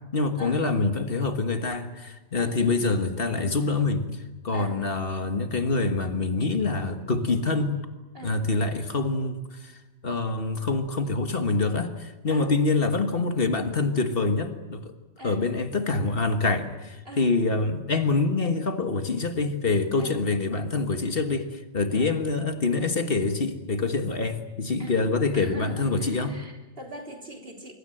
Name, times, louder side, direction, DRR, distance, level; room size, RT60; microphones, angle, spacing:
voice 1, 0.1-7.8 8.2-9.8 10.0-14.9 15.2-26.4, left 3 dB, 55° left, 7 dB, 1.8 m, -26 dB
voice 2, 25.3-27.7, right 1 dB, 55° right, 2 dB, 3.9 m, -41 dB
24.5 x 24.0 x 7.9 m, 1.1 s
omnidirectional pair, 1.2 m